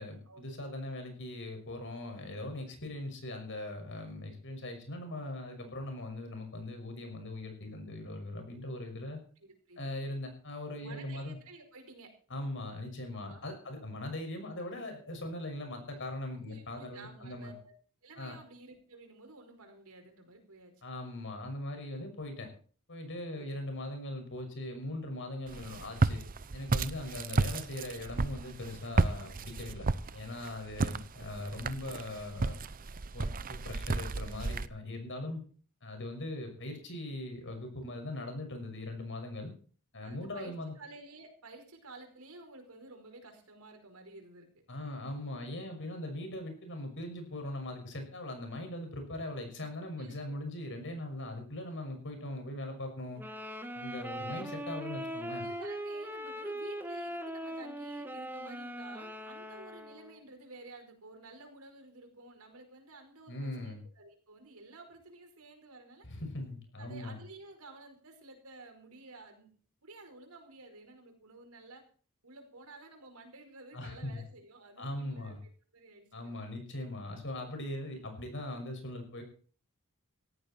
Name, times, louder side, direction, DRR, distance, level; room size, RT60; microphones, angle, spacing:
voice 1, 0.0-9.2 9.8-11.4 12.3-17.5 18.2-18.3 20.8-22.5 22.9-26.2 26.5-29.9 30.1-32.6 33.1-35.4 35.8-39.5 39.9-40.7 44.7-53.2 53.7-55.5 63.3-63.8 66.0-67.2 73.7-74.2 74.8-75.4 76.1-79.2, left 1 dB, 60° left, 5 dB, 6.1 m, -40 dB
voice 2, 2.3-2.8 9.4-9.9 10.8-12.1 13.1-13.7 16.4-17.7 18.0-20.7 23.3-23.5 30.4-31.1 35.1-35.3 40.0-44.6 45.7-46.2 50.0-50.2 55.4-66.1 66.8-69.5 69.8-71.8 72.2-75.4 75.7-76.4, right 2 dB, 80° right, 4 dB, 5.2 m, -52 dB
Walk footsteps, 25.5-34.7, right 3 dB, 40° right, 0.7 m, -33 dB
sound 1, 53.2-60.2, right 1 dB, 10° right, 1.7 m, -40 dB
17.5 x 14.0 x 4.5 m, 0.43 s
head